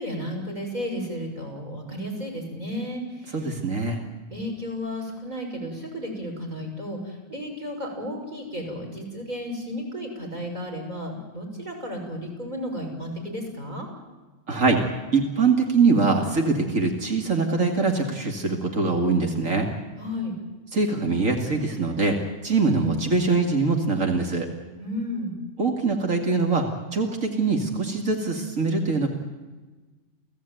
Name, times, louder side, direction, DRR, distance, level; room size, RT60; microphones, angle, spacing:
voice 1, 0.0-3.5 4.3-13.9 20.0-20.3 24.8-25.3, equal, 35° right, 2 dB, 6.5 m, -33 dB
voice 2, 3.3-4.0 14.5-14.8 15.1-19.7 20.7-24.5 25.6-26.7 26.9-29.1, right 4 dB, 90° right, 3 dB, 2.8 m, -23 dB
29.5 x 17.0 x 9.3 m, 1.3 s
omnidirectional pair, 1.3 m